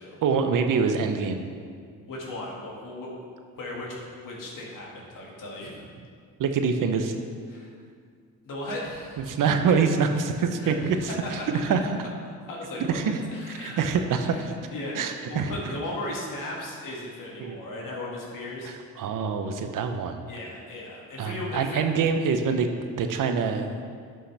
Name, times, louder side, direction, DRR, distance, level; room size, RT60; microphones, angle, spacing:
voice 1, 0.2-1.4 6.4-7.1 9.3-11.0 11.3-11.4 11.7-11.8 12.9-13.2 13.6-14.5 15.0-15.5 17.4-17.5 18.6-20.2 21.2-22.7 23.0-23.7, right 5 dB, 60° right, 7 dB, 0.8 m, -25 dB
voice 2, 2.1-3.2 3.6-5.8 7.5-7.7 8.4-9.4 10.6-11.8 12.4-13.0 13.3-13.9 14.3-18.7 20.3-21.8, left 1 dB, 60° left, -3 dB, 2.1 m, -36 dB
11.5 x 5.4 x 3.4 m, 2.1 s
supercardioid pair, 65°, 36 cm